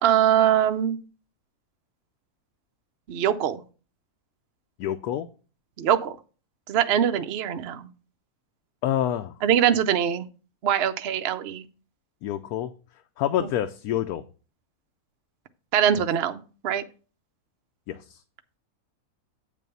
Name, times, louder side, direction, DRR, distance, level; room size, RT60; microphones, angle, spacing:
voice 1, 0.0-1.0 3.1-3.6 5.8-6.2 6.7-7.9 9.4-10.3 10.6-11.7 13.4-13.5 15.7-16.8, right 9 dB, 60° right, 8 dB, 0.7 m, -23 dB
voice 2, 4.8-5.3 8.8-9.3 12.2-12.7 13.2-14.2 15.9-16.0 17.9-18.2, left 11 dB, 80° left, 8 dB, 1.1 m, -27 dB
8.5 x 3.4 x 6.7 m, 0.36 s
omnidirectional pair, 1.6 m